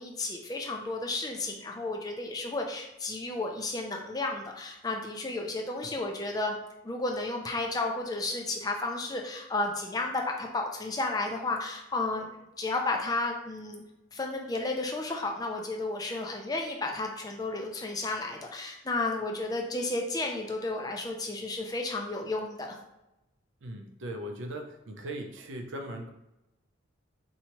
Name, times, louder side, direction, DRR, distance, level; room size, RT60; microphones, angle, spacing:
voice 1, 0.0-6.6 6.8-13.8 14.1-22.8, left 2 dB, 20° left, 2 dB, 0.4 m, -32 dB
voice 2, 23.6-26.1, right 1 dB, 75° right, 4 dB, 0.6 m, -39 dB
4.4 x 2.8 x 2.9 m, 0.92 s
head